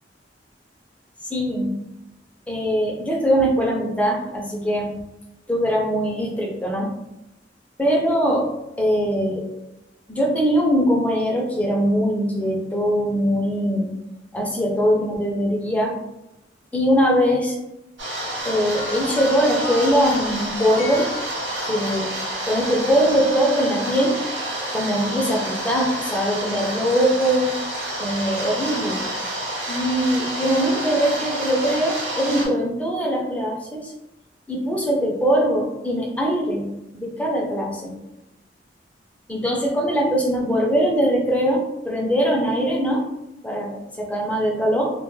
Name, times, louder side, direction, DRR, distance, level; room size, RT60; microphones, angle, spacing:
voice 1, 1.3-1.7 2.5-4.9 5.5-6.9 7.8-8.5 8.8-9.4 10.1-13.9 14.3-15.9 16.7-17.6 18.4-21.1 21.7-22.1 22.5-24.1 24.7-27.5 28.0-29.0 29.7-33.9 34.5-36.7 36.9-37.9 39.3-43.0 43.4-44.9, equal, 10° left, -1 dB, 0.4 m, -21 dB
sound 1, 18.0-32.5, right 1 dB, 90° right, 0.8 m, -29 dB
sound 2, 18.4-21.9 23.0-23.2, left 3 dB, 65° left, 0.5 m, -37 dB
2.2 x 2.0 x 3.0 m, 0.91 s
head